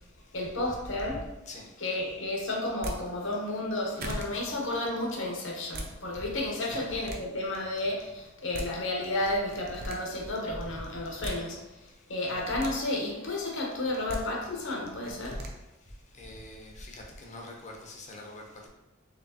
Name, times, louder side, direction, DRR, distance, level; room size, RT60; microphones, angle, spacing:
voice 1, 0.3-1.2 1.8-11.6 12.1-15.5, left 2 dB, 65° left, -1 dB, 1.0 m, -32 dB
sound 1, 2.7-3.0 3.6-3.7 4.0-4.3 5.5-5.9 6.6-7.2 8.2-8.3 8.5-8.7 9.5-10.0 11.0-11.4 12.2-12.7 13.8-14.2 15.0-15.5, right 1 dB, 50° right, 0.6 m, -37 dB
voice 2, 16.2-18.7, left 2 dB, 35° left, 1 dB, 0.7 m, -44 dB
4.3 x 3.3 x 2.8 m, 1.0 s
head